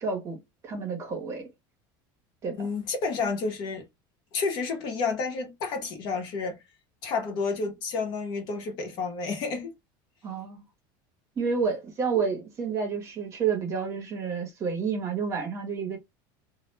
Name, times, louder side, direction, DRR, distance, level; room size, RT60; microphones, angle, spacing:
voice 1, 0.0-1.5 2.4-2.7 10.2-10.6 11.4-16.0, right 5 dB, 25° right, 0.8 m, -30 dB
voice 2, 2.5-3.9 4.3-6.6 7.0-9.7, left 4 dB, 40° left, 0.7 m, -30 dB
2.1 x 2.1 x 3.0 m
cardioid pair, 175°, 11 cm